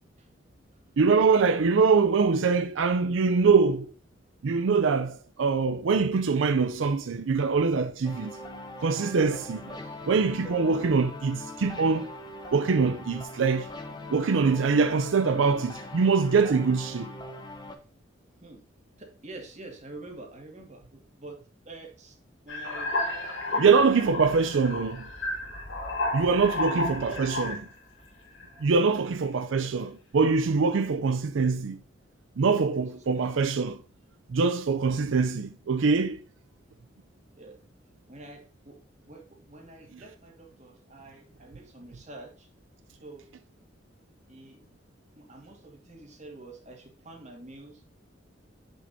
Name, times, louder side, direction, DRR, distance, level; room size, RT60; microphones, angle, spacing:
voice 1, 1.0-3.9 4.4-8.3 8.8-9.6 10.1-12.1 12.5-13.7 14.1-17.1 23.6-25.0 26.1-27.6 28.6-31.8 32.4-33.8 34.3-36.2, right 4 dB, 85° right, 0.5 m, -23 dB
voice 2, 1.8-2.3 9.6-10.0 18.4-18.6 19.0-21.4 21.7-22.2 22.4-23.0 23.5-24.8 26.5-27.4 28.9-29.1 29.5-29.8 32.9-33.3 37.4-37.6 38.1-38.8 39.1-42.5 42.9-43.3 44.3-44.6 45.1-47.8, right 2 dB, 35° right, 2.1 m, -47 dB
sound 1, 8.0-17.8, left 2 dB, 20° left, 1.0 m, -41 dB
sound 2, 22.5-27.7 28.3-28.8, left 2 dB, 85° left, 2.3 m, -32 dB
7.8 x 6.5 x 2.7 m
head